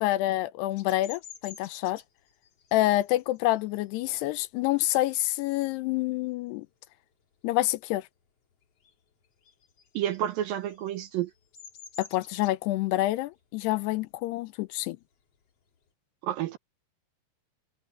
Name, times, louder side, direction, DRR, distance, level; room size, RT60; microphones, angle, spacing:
voice 1, 0.0-2.0 2.7-6.7 7.4-8.1 12.0-15.0, left 16 dB, 85° left, 2.8 m, -27 dB
Bird vocalization bird call bird song, 0.8-6.0 6.4-6.7 7.0-8.3 8.5-15.9, left 7 dB, 45° left, 2.6 m, -52 dB
voice 2, 9.9-11.3 16.2-16.6, right 11 dB, 75° right, 2.3 m, -30 dB
omnidirectional pair, 4.7 m